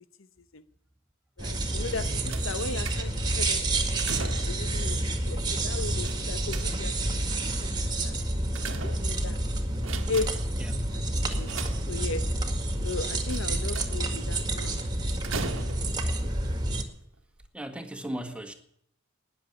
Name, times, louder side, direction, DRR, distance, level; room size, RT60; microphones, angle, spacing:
voice 1, 1.4-4.0 4.5-7.1 7.6-8.1 8.8-9.4 10.1-10.4 10.9-11.6 11.9-12.4 12.8-14.8 15.5-15.7, left 3 dB, 70° left, 0.9 m, -36 dB
sound 1, 1.4-16.8, right 1 dB, 20° right, 2.0 m, -29 dB
sound 2, 2.3-3.3 3.8-4.7 6.0-7.1 8.1-9.4 9.7-10.6 11.3-12.3 13.3-14.1 15.2-16.1 16.9-17.0 17.4-17.5, right 4 dB, 70° right, 1.5 m, -39 dB
voice 2, 10.6-11.0 17.5-18.5, right 1 dB, 5° right, 1.6 m, -37 dB
20.0 x 7.2 x 9.8 m
head